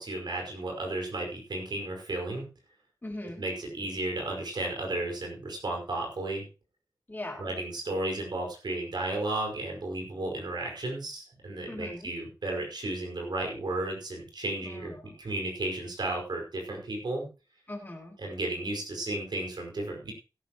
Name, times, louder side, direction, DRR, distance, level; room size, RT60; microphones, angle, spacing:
voice 1, 0.0-2.5 3.4-6.5 7.4-14.9 15.2-17.3 18.2-20.1, right 2 dB, 80° right, 0 dB, 5.3 m, -33 dB
voice 2, 3.0-3.4 7.1-7.5 11.7-12.1 14.6-15.2 17.7-18.2, left 1 dB, 25° left, 1 dB, 4.3 m, -40 dB
16.5 x 11.0 x 3.1 m, 0.31 s
wide cardioid pair, 95°, 8 cm